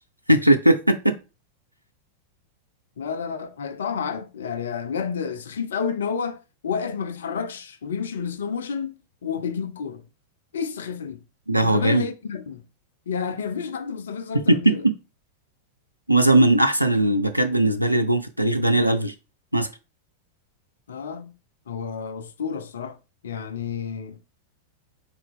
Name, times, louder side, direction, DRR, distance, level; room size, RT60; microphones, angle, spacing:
voice 1, 0.3-1.1 11.5-12.0 14.3-14.9 16.1-19.1 19.5-19.7, right 1 dB, 90° right, 0.4 m, -19 dB
voice 2, 3.0-10.0 10.5-11.2 11.6-12.6 13.1-14.8 20.9-21.3 21.7-23.0 23.2-24.2, left 6 dB, 65° left, 0.4 m, -30 dB
3.8 x 2.9 x 3.4 m
figure-of-eight pair, 90°, 0 cm